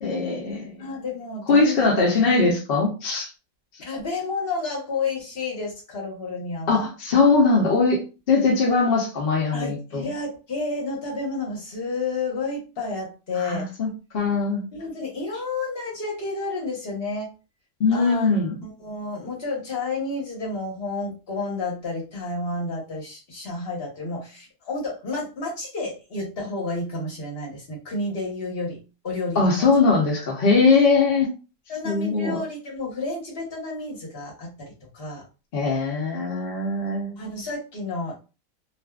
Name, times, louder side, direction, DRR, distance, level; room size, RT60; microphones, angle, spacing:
voice 1, 0.0-0.7 1.5-3.3 6.7-10.0 13.4-13.9 14.1-14.6 17.8-18.6 29.4-31.3 31.8-32.4 35.5-37.2, left 4 dB, 75° left, -1 dB, 0.5 m, -21 dB
voice 2, 0.8-1.9 3.8-6.8 9.5-13.7 14.7-17.3 17.9-18.3 18.6-29.7 31.7-35.2 37.2-38.1, left 3 dB, 45° left, -2 dB, 0.9 m, -31 dB
2.6 x 2.4 x 2.3 m, 0.31 s
omnidirectional pair, 1.9 m